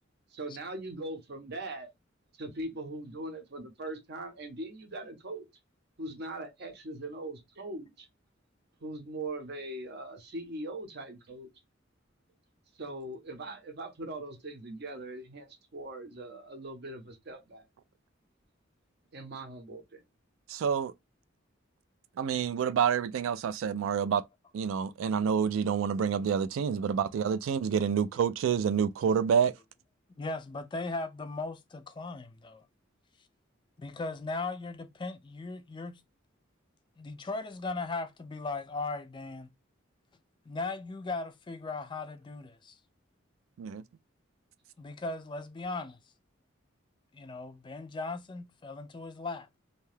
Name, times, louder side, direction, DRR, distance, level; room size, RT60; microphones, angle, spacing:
voice 1, 0.3-1.9 2.3-5.5 6.0-8.1 8.8-11.5 12.8-17.7 19.1-20.0, right 2 dB, 55° right, 0.7 m, -41 dB
voice 2, 20.5-20.9 22.2-24.2 24.5-29.5 43.6-43.8, right 7 dB, 85° right, 0.3 m, -28 dB
voice 3, 30.1-32.7 33.8-36.0 37.0-39.5 40.5-42.8 44.8-46.0 47.1-49.5, left 3 dB, 25° left, 0.3 m, -38 dB
2.7 x 2.2 x 3.2 m
head